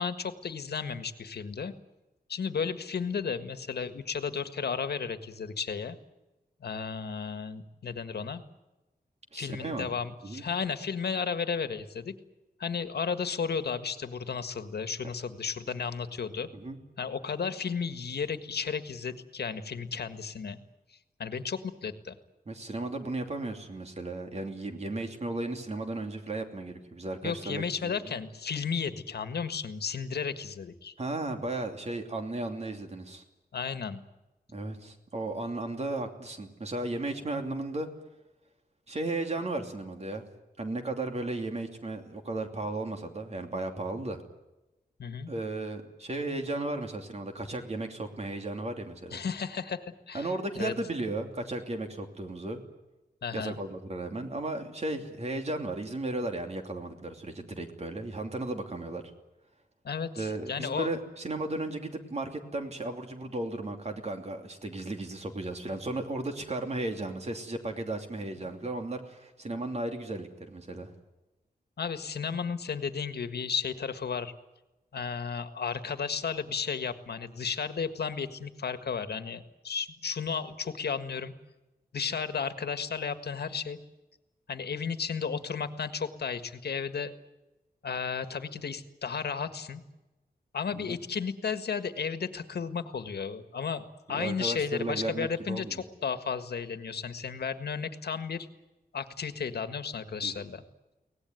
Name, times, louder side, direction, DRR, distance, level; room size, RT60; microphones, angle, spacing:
voice 1, 0.0-1.7 2.3-6.0 6.6-8.4 9.3-12.1 12.6-16.5 17.0-20.6 20.9-22.1 27.2-30.9 33.5-34.0 45.0-45.3 49.1-50.3 50.6-50.7 53.2-53.6 59.8-60.9 71.8-74.3 74.9-81.3 81.9-83.8 84.5-87.1 87.8-89.8 90.5-98.5 98.9-100.6, left 6 dB, 80° left, 10 dB, 1.7 m, -33 dB
voice 2, 9.3-9.9 10.2-10.4 16.5-16.8 22.5-28.1 31.0-33.2 34.5-37.9 38.9-40.2 40.6-44.2 45.3-49.2 50.1-52.6 53.3-59.0 60.2-70.9 90.8-91.0 94.1-95.8 100.2-100.4, right 2 dB, 40° right, 5 dB, 2.9 m, -35 dB
24.0 x 18.5 x 9.5 m, 1.0 s
wide cardioid pair, 155°, 16 cm